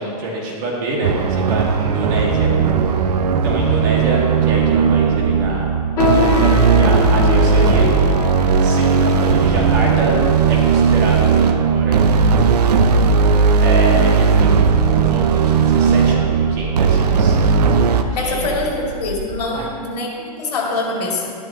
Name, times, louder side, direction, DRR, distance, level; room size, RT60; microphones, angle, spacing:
voice 1, 0.0-2.5 3.4-5.8 6.0-7.9 8.6-10.1 10.5-11.2 11.6-12.8 13.6-17.4 18.2-18.5 19.5-19.7, right 2 dB, 30° right, -3 dB, 1.8 m, -26 dB
sound 1, 1.0-18.0, right 5 dB, 85° right, 0.8 m, -16 dB
sound 2, 6.0-11.6 12.3-12.4 13.2-13.5 13.9-14.0 14.7-14.8, left 7 dB, 15° left, 0.9 m, -26 dB
sound 3, 13.6-19.4, right 1 dB, 10° right, 0.7 m, -31 dB
voice 2, 18.2-21.3, left 3 dB, 80° left, -2 dB, 2.8 m, -24 dB
12.5 x 12.0 x 2.9 m, 2.3 s
supercardioid pair, 175°, 20 cm